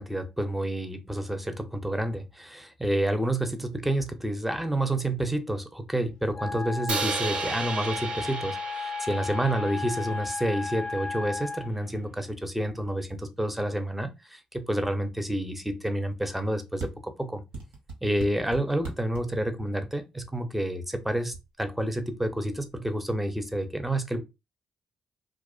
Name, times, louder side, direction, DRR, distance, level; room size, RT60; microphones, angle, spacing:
voice 1, 0.0-17.4 18.0-24.2, right 1 dB, 5° right, 0.6 m, -29 dB
Wind instrument woodwind instrument, 6.3-11.7, left 4 dB, 50° left, 0.4 m, -34 dB
Crash cymbal, 6.9-11.1, right 4 dB, 60° right, 0.5 m, -35 dB
sound 1, 16.8-16.9 17.5-19.2 20.6-21.0 21.3-21.5 21.8-23.0, right 3 dB, 90° right, 0.8 m, -40 dB
2.4 x 2.1 x 2.4 m
supercardioid pair, 60°, 2 cm